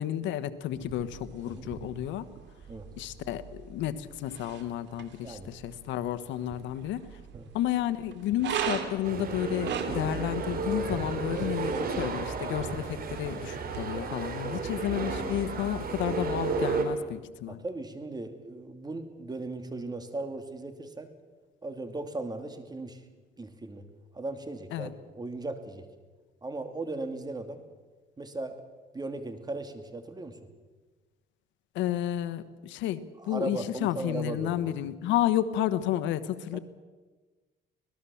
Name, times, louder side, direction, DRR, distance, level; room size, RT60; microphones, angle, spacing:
voice 1, 0.0-2.3 3.0-3.4 3.7-7.0 7.5-17.6 24.7-24.9 31.7-36.6, left 12 dB, 90° left, 12 dB, 1.2 m, -31 dB
sound 1, 0.8-13.8, right 8 dB, 70° right, 2.9 m, -41 dB
sound 2, 9.0-16.8, right 4 dB, 55° right, 3.9 m, -33 dB
voice 2, 17.5-21.1 21.6-23.0 23.4-23.8 24.1-25.9 26.4-27.6 28.2-28.6 28.9-30.4 33.2-34.6 36.5-36.6, right 2 dB, 20° right, 8 dB, 2.8 m, -37 dB
25.5 x 18.5 x 7.2 m, 1.3 s
cardioid pair, 105°, 19 cm